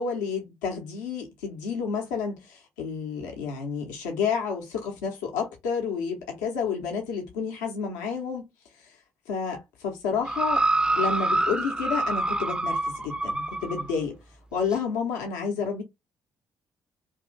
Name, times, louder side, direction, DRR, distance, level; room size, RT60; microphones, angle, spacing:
voice 1, 0.0-8.5 8.8-9.0 9.3-10.6 11.0-14.2 14.5-15.8, left 6 dB, 80° left, 0.8 m, -30 dB
sound 1, 10.3-13.9 14.7-14.8, right 2 dB, 10° right, 0.4 m, -26 dB
2.7 x 2.5 x 3.8 m
hypercardioid pair, 45°, 10 cm